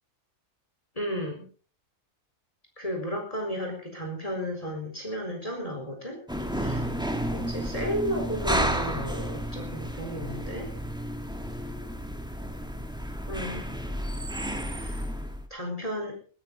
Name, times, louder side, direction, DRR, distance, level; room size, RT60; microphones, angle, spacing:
voice 1, 0.9-1.5 2.8-6.2 6.5-6.9 7.3-10.7 13.3-13.7 14.8-15.0 15.5-16.2, equal, 25° left, 1 dB, 4.5 m, -33 dB
sound 1, 6.3-15.5, equal, 5° right, 1.8 m, -32 dB
21.5 x 13.5 x 4.0 m, 0.39 s
omnidirectional pair, 1.6 m